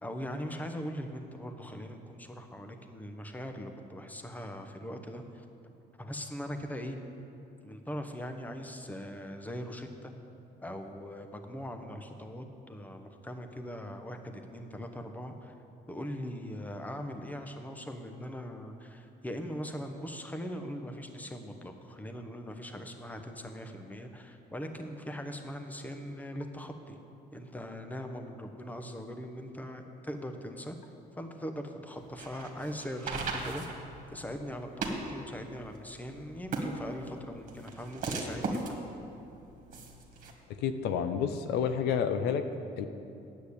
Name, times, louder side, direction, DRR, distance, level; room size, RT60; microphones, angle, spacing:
voice 1, 0.0-5.4 6.0-7.0 7.6-10.1 10.6-15.5 15.9-27.0 27.3-30.8 31.2-38.8, equal, 10° left, 6 dB, 1.0 m, -41 dB
sound 1, 32.0-40.3, right 3 dB, 50° right, 1.9 m, -38 dB
voice 2, 40.6-42.4 42.8-42.9, left 7 dB, 80° left, 9 dB, 0.7 m, -29 dB
9.5 x 8.3 x 8.5 m, 2.8 s
cardioid pair, 110°, 17 cm